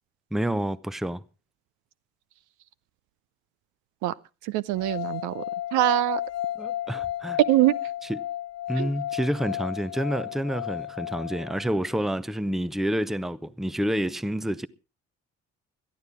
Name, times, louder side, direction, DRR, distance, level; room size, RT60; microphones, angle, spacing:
voice 1, 0.3-1.2 6.6-7.4 8.1-8.2 8.7-14.7, equal, ahead, 0.7 m, -28 dB
voice 2, 4.4-5.4 5.7-6.2 7.5-7.7 8.8-8.9, right 15 dB, 60° right, 0.6 m, -23 dB
sound 1, 4.8-11.9, left 12 dB, 45° left, 0.8 m, -33 dB
21.5 x 13.5 x 3.5 m
figure-of-eight pair, 45°, 34 cm